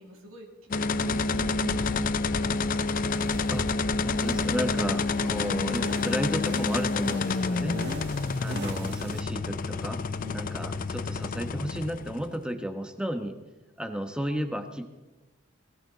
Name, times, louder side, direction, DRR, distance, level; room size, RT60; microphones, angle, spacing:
voice 1, 0.0-2.9 5.2-5.4 7.6-8.0 10.2-10.4, right 2 dB, 90° right, -1 dB, 2.7 m, -44 dB
sound 1, 0.7-12.4, left 4 dB, 40° left, 0.5 m, -28 dB
sound 2, 1.1-9.2, right 2 dB, 55° right, 1.6 m, -44 dB
voice 2, 4.0-7.7 8.4-10.0 10.3-13.4 13.8-15.0, equal, 5° right, 6 dB, 1.1 m, -33 dB
21.5 x 15.5 x 4.0 m, 1.1 s
head